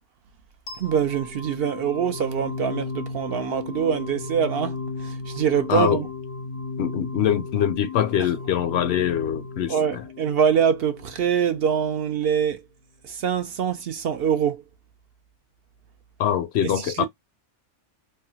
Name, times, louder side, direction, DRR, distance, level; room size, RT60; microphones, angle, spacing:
sound 1, 0.7-11.6, left 4 dB, 85° left, 1.2 m, -35 dB
voice 1, 0.8-6.1 9.7-12.6 13.0-14.6 16.6-17.1, right 7 dB, 65° right, 0.7 m, -24 dB
voice 2, 5.7-6.0 6.8-10.0 16.2-17.1, left 10 dB, 65° left, 0.8 m, -23 dB
3.4 x 2.2 x 2.7 m
omnidirectional pair, 1.2 m